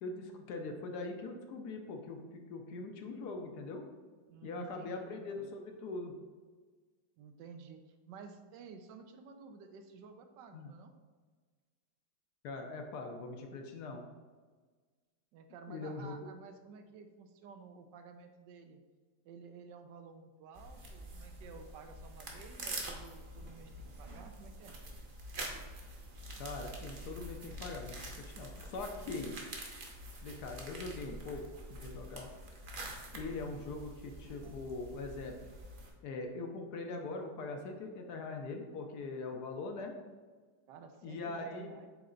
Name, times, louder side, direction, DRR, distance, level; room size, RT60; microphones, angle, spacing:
voice 1, 0.0-3.8 4.4-6.2 10.5-10.7 12.4-14.0 15.7-16.1 26.4-29.3 30.2-31.4 31.7-32.3 33.1-35.5 36.0-39.9 41.0-41.7, left 3 dB, 70° left, 4 dB, 1.1 m, -42 dB
voice 2, 4.3-5.5 7.2-10.9 15.3-18.8 19.2-24.8 40.7-41.9, right 5 dB, 75° right, 6 dB, 1.2 m, -53 dB
sound 1, 20.5-35.9, right 1 dB, 50° right, 0.6 m, -46 dB
7.8 x 3.2 x 3.8 m, 1.4 s
omnidirectional pair, 2.0 m